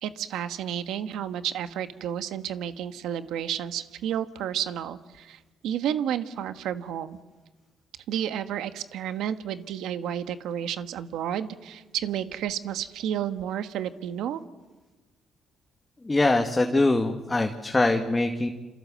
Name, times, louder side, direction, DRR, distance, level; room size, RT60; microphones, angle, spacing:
voice 1, 0.0-7.2 8.1-14.4, right 10 dB, 85° right, 10 dB, 1.4 m, -31 dB
voice 2, 16.0-18.5, left 2 dB, 20° left, 4 dB, 1.8 m, -23 dB
28.5 x 27.0 x 7.7 m, 1.2 s
cardioid pair, 90°, 0 cm